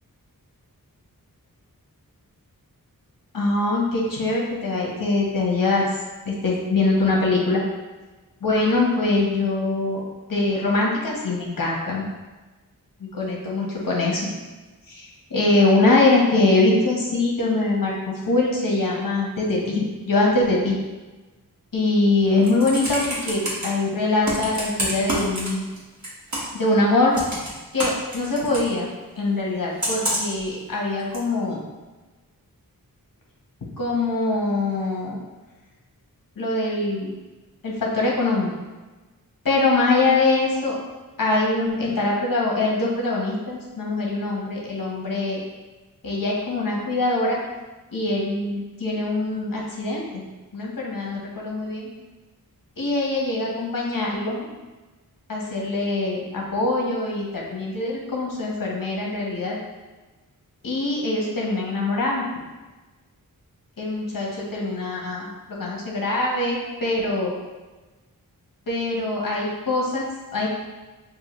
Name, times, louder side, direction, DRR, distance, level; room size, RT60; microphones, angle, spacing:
voice 1, 3.3-5.9 6.2-7.6 8.4-10.0 10.3-12.1 13.0-14.3 14.9-20.8 21.7-25.7 26.5-27.1 27.7-28.9 29.2-31.6 33.8-35.2 36.4-37.1 37.6-38.5 39.4-40.8 41.2-45.4 46.0-47.4 47.9-50.3 50.5-51.9 52.8-54.5 55.3-59.6 60.6-62.2 63.8-65.3 65.6-67.3 68.7-70.5, left 2 dB, 65° left, -3 dB, 1.1 m, -23 dB
Computer keyboard, 22.2-23.7 24.2-25.8 26.0-26.6 27.1-28.7 29.8-30.4 31.1-31.2, right 1 dB, 50° right, 1.3 m, -27 dB
6.5 x 2.6 x 3.0 m, 1.2 s
wide cardioid pair, 85°, 36 cm